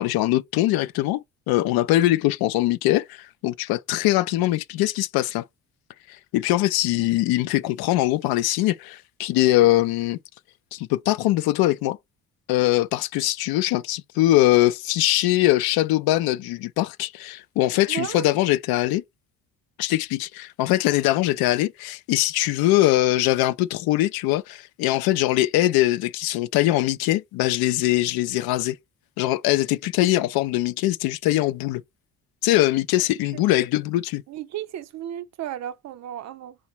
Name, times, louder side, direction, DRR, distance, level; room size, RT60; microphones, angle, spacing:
voice 1, 0.0-5.4 6.1-10.2 10.7-12.0 12.5-19.0 19.8-28.8 29.2-31.8 32.4-34.2, left 16 dB, 80° left, 0.5 m, -22 dB
voice 2, 17.9-18.3 34.3-36.5, right 11 dB, 50° right, 0.5 m, -33 dB
4.1 x 2.2 x 4.4 m
cardioid pair, 140°, 36 cm